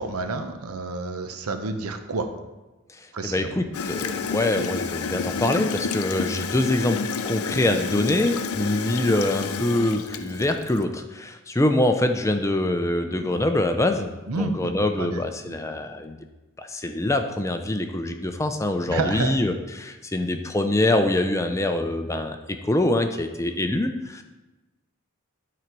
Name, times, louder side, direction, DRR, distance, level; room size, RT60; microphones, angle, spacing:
voice 1, 0.0-2.3 3.1-3.6 13.1-13.3 14.3-15.6 18.9-19.4, right 3 dB, 75° right, 7 dB, 0.8 m, -30 dB
voice 2, 3.2-14.1 14.4-16.2 16.6-24.2, left 1 dB, 15° left, 6 dB, 0.4 m, -24 dB
Gurgling / Toilet flush, 3.7-10.8, left 5 dB, 75° left, 0.5 m, -30 dB
12.0 x 4.0 x 4.6 m, 1.1 s
head